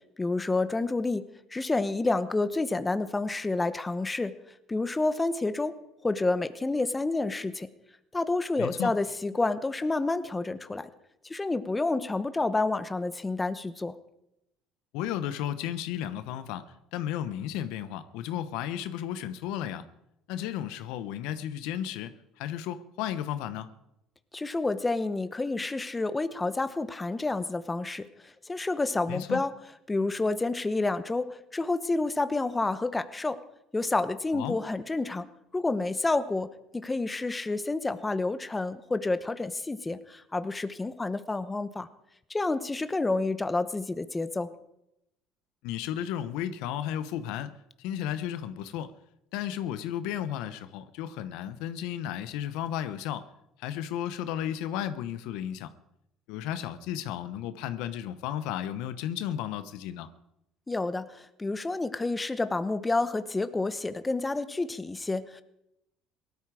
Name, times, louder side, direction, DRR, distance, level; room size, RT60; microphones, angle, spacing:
voice 1, 0.2-1.2 1.5-4.3 4.7-5.7 6.0-7.7 8.1-10.9 11.3-13.9 24.3-28.1 28.5-29.5 29.9-33.4 33.7-35.3 35.5-36.5 36.7-41.9 42.3-44.5 60.7-65.4, left 3 dB, 15° left, 1.0 m, -29 dB
voice 2, 8.6-8.9 14.9-16.7 16.9-19.8 20.3-23.7 29.1-29.4 34.3-34.6 45.6-47.5 47.8-48.9 49.3-53.3 53.6-55.7 56.3-60.1, left 10 dB, 80° left, 1.0 m, -34 dB
18.5 x 13.0 x 4.9 m
cardioid pair, 105°, 0 cm